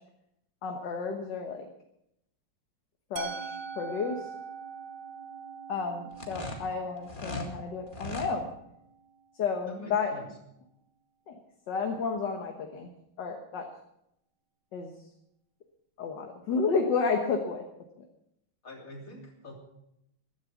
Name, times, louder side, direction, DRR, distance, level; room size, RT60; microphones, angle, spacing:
voice 1, 0.6-1.7 3.1-4.3 5.7-8.5 9.4-10.1 11.3-11.4 11.7-12.9 13.2-13.7 14.7-14.9 16.0-17.7 18.0-18.1, left 5 dB, 60° left, 3 dB, 1.9 m, -31 dB
Musical instrument, 3.2-9.1, right 6 dB, 60° right, 1.7 m, -43 dB
sound 1, 6.1-7.5 7.9-8.3, left 1 dB, 25° left, 2.1 m, -38 dB
voice 2, 9.7-10.3 18.6-19.5, left 1 dB, 40° left, 0 dB, 3.5 m, -45 dB
15.0 x 11.5 x 6.0 m, 0.79 s
omnidirectional pair, 2.2 m